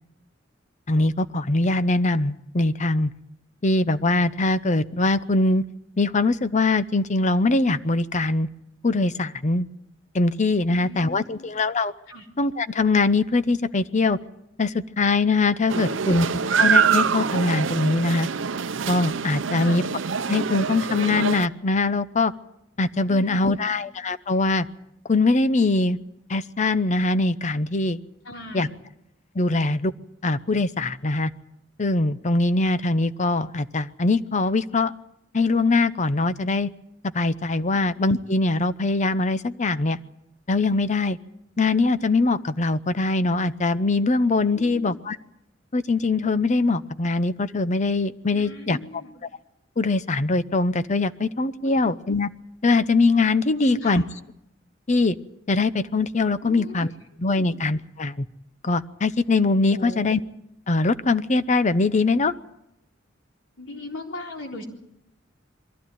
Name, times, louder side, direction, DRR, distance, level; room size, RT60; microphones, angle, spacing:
voice 1, 0.9-3.1 3.6-5.6 6.0-8.5 8.8-9.7 10.1-11.9 12.4-14.2 14.6-16.3 16.6-18.3 18.9-19.8 20.3-22.3 22.8-24.7 25.1-26.0 26.3-28.0 28.5-28.7 29.3-29.9 30.2-31.3 31.8-34.9 35.3-36.7 37.1-40.0 40.5-41.2 41.6-45.2 45.7-48.8 49.8-52.3 52.6-54.0 54.9-55.1 55.5-56.9 57.2-58.3 58.6-60.2 60.7-62.3, left 3 dB, 40° left, 14 dB, 0.7 m, -22 dB
voice 2, 10.7-11.5 12.1-12.3 19.4-19.8 23.1-23.8 28.2-28.7 37.7-37.8 44.5-45.0 48.3-49.1 51.6-51.8 53.6-54.0 56.4-56.9 57.3-57.5 59.7-60.1 63.6-64.6, left 2 dB, 75° left, 1 dB, 3.9 m, -39 dB
sound 1, 15.7-21.5, right 6 dB, 75° right, 0.7 m, -24 dB
22.5 x 15.0 x 9.2 m, 0.82 s
head